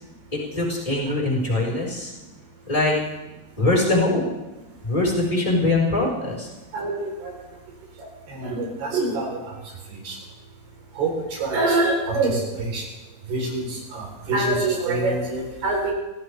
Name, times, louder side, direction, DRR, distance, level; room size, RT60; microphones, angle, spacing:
voice 1, 0.3-2.1 2.7-3.0 3.6-4.2 4.8-6.5, left 2 dB, 10° left, -4 dB, 4.6 m, -22 dB
voice 2, 6.7-7.3 8.3-9.4 9.9-10.2 11.0-12.8 13.3-15.9, right 2 dB, 90° right, 0 dB, 6.0 m, -25 dB
26.0 x 16.0 x 3.5 m, 1.1 s
omnidirectional pair, 4.5 m